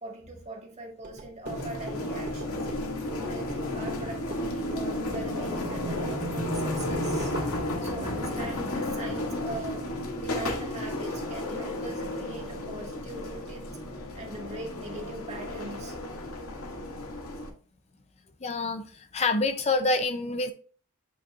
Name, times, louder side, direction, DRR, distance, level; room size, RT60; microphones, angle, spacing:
voice 1, 0.0-2.7 3.0-7.4 7.8-9.9 10.2-13.7 14.2-16.0, right 2 dB, 30° right, 1 dB, 1.8 m, -41 dB
sound 1, 1.0-7.5, right 2 dB, 45° right, 2.2 m, -42 dB
sound 2, 1.5-17.5, left 1 dB, 80° left, 2.3 m, -33 dB
voice 2, 18.4-20.5, left 3 dB, 30° left, 8 dB, 0.5 m, -27 dB
8.7 x 6.2 x 2.5 m, 0.40 s
head